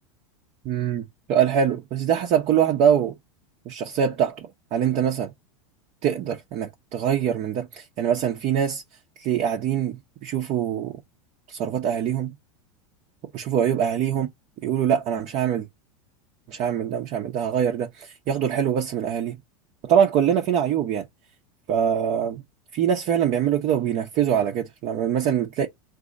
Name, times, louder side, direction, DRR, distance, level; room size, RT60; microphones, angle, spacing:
voice 1, 0.6-3.1 3.7-5.3 6.0-8.8 9.2-11.0 11.5-12.3 13.3-14.3 14.6-15.7 16.5-19.4 19.8-21.1 21.7-22.4 22.7-25.7, right 8 dB, 40° right, 0.8 m, -23 dB
3.8 x 2.8 x 3.7 m
hypercardioid pair, 115°, 17 cm